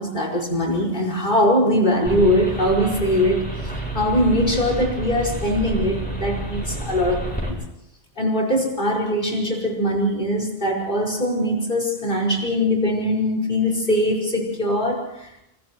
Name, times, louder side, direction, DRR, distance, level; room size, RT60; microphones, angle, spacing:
voice 1, 0.0-3.5 3.9-7.6 8.2-15.3, equal, 50° left, 5.9 m, -21 dB
sound 1, 2.1-7.5, right 2 dB, 10° left, 8.0 m, -29 dB
29.0 x 28.5 x 3.1 m
omnidirectional pair, 1.1 m